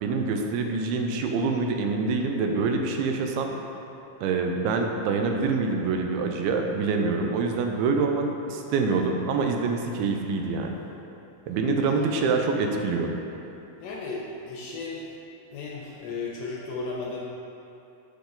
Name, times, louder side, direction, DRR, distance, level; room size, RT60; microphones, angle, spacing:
voice 1, 0.0-3.5 4.2-10.8 11.5-13.1, right 4 dB, 85° right, 3 dB, 2.5 m, -26 dB
voice 2, 13.8-15.0 15.5-17.3, left 3 dB, 80° left, -3 dB, 2.1 m, -35 dB
7.0 x 5.0 x 3.8 m, 2.9 s
omnidirectional pair, 4.4 m